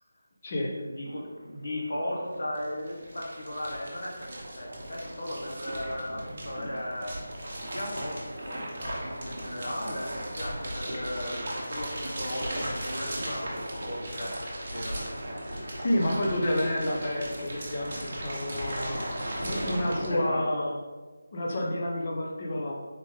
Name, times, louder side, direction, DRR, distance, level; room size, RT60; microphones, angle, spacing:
voice 1, 0.7-7.1 7.7-15.0 20.1-20.5, left 1 dB, 70° left, -2 dB, 1.2 m, -36 dB
sound 1, 1.4-1.5 1.6-20.1, right 1 dB, 35° right, 0.8 m, -37 dB
voice 2, 15.8-20.7 21.3-22.7, left 1 dB, 25° left, -1 dB, 0.6 m, -29 dB
4.0 x 3.3 x 3.5 m, 1.3 s
figure-of-eight pair, 175°, 0 cm